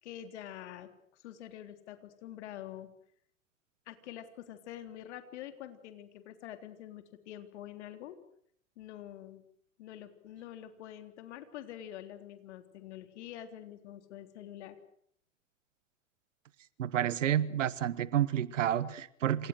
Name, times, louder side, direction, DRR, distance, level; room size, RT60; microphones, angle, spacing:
voice 1, 0.0-2.9 3.9-8.2 8.8-9.4 9.8-14.8, left 11 dB, 60° left, 3.6 m, -46 dB
voice 2, 16.8-19.5, right 11 dB, 70° right, 1.5 m, -30 dB
28.0 x 27.5 x 6.6 m
figure-of-eight pair, 95°, 39 cm